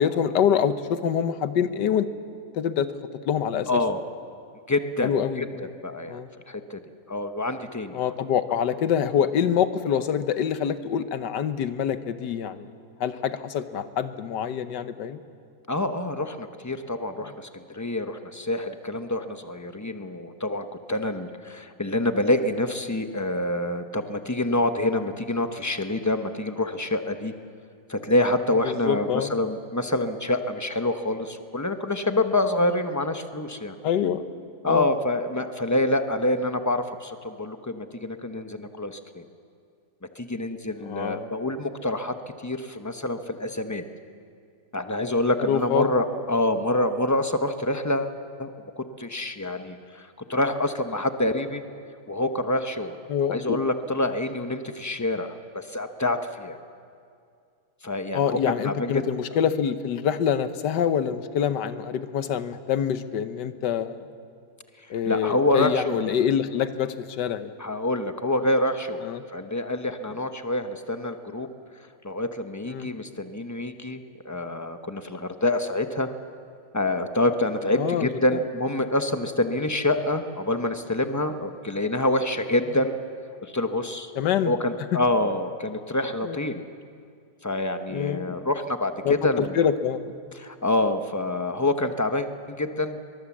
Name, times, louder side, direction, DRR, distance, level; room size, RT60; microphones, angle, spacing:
voice 1, 0.0-2.1 2.5-2.9 3.2-3.8 5.0-5.7 6.1-6.3 7.9-12.7 13.0-15.2 28.6-29.3 33.8-34.2 34.6-34.9 40.9-41.3 45.4-45.9 53.1-53.6 58.1-64.0 64.9-67.5 69.0-69.2 72.7-72.9 77.7-78.1 84.2-84.5 86.2-86.4 87.9-88.4 89.0-90.1, left 8 dB, 85° left, 11 dB, 1.6 m, -25 dB
voice 2, 3.7-4.0 4.7-5.1 5.4-5.5 5.8-6.2 6.5-6.8 7.1-8.0 15.7-27.3 27.9-33.7 34.6-39.2 40.2-43.8 44.7-51.6 52.1-53.0 53.3-56.6 57.8-59.0 65.1-66.0 67.6-69.1 69.3-71.5 72.0-76.1 76.7-83.0 83.4-84.1 84.4-86.6 87.4-89.7 90.4-93.0, left 1 dB, 15° left, 7 dB, 0.6 m, -26 dB
22.5 x 22.0 x 7.3 m, 2.3 s
omnidirectional pair, 1.8 m